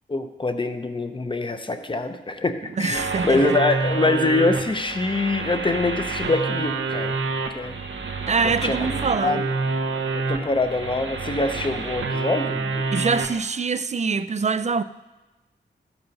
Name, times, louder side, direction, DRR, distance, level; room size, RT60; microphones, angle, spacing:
voice 1, 0.1-7.2 7.5-7.8 8.4-9.4 10.1-12.9, left 3 dB, 25° left, 0.7 m, -24 dB
voice 2, 2.8-3.6 8.3-9.4 12.9-14.8, right 5 dB, 35° right, 0.4 m, -24 dB
sound 1, 2.9-13.4, right 4 dB, 90° right, 1.0 m, -28 dB
13.5 x 7.0 x 5.4 m
wide cardioid pair, 110°, 20 cm